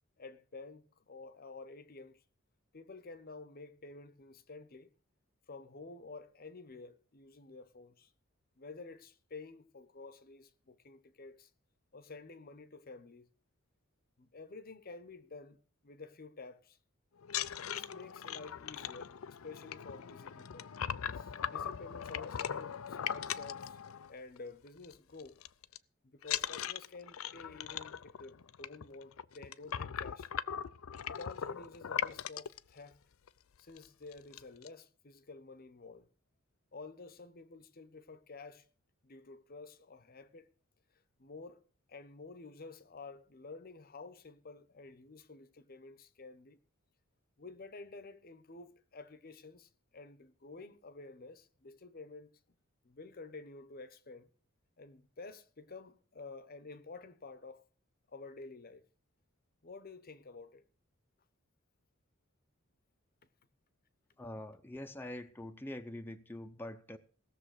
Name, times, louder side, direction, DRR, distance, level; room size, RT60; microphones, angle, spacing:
voice 1, 0.2-2.2 2.7-4.9 5.5-8.1 8.6-11.5 11.9-13.3 14.2-16.8 17.6-20.7 21.1-23.8 24.1-25.4 26.0-30.3 31.1-33.0 33.6-36.1 36.7-38.7 39.0-40.5 41.2-41.6 41.9-46.6 47.4-52.3 52.8-54.3 54.8-57.7 58.1-58.8 59.6-60.6, left 3 dB, 45° left, 0.9 m, -50 dB
sound 1, 17.2-24.4 24.7-24.9 25.2-25.8 26.2-32.6 33.3-33.4 33.7-33.9 34.1-34.7, left 9 dB, 80° left, 0.5 m, -39 dB
voice 2, 64.2-67.0, left 1 dB, 10° left, 0.7 m, -44 dB
17.5 x 6.9 x 6.5 m
head